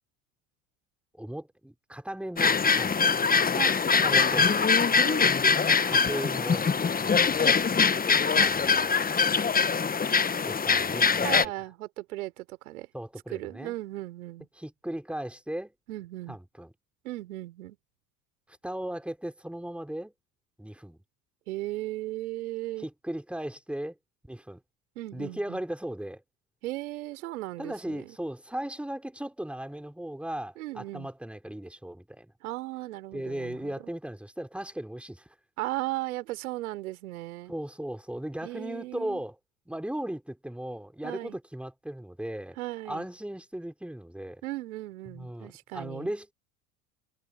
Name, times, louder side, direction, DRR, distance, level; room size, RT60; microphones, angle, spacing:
voice 1, 1.2-3.0 4.0-4.5 5.8-6.7 7.0-7.5 8.3-9.1 10.5-11.5 12.9-13.7 14.6-15.7 16.3-16.7 18.6-20.1 20.6-21.0 22.8-24.0 24.3-24.6 25.1-26.2 27.6-32.3 33.1-35.3 37.5-39.3 39.7-42.6 42.9-44.4 45.1-46.3, right 1 dB, 5° right, 3.8 m, -37 dB
sound 1, 2.4-11.5, left 5 dB, 20° left, 1.3 m, -23 dB
voice 2, 11.2-12.9 13.3-14.5 15.9-16.4 17.0-17.8 21.5-22.9 25.0-25.6 26.6-28.2 30.6-31.1 32.4-33.9 35.6-37.5 38.4-39.2 41.0-41.4 42.6-43.1 44.4-46.1, right 17 dB, 75° right, 3.8 m, -36 dB
hypercardioid pair, 70°, 43 cm